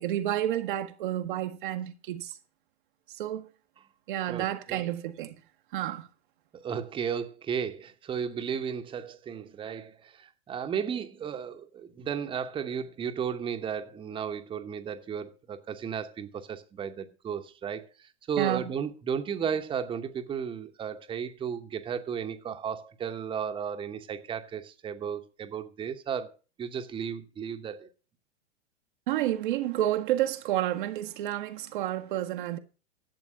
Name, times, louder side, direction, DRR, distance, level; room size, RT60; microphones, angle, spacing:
voice 1, 0.0-2.4 3.1-3.5 4.1-5.3 5.7-6.1 18.4-18.7 29.1-32.6, right 13 dB, 45° right, 0.9 m, -30 dB
voice 2, 4.3-4.8 6.5-26.3 26.6-27.9, right 7 dB, 15° right, 1.0 m, -34 dB
11.5 x 7.9 x 5.3 m
figure-of-eight pair, 95°, 34 cm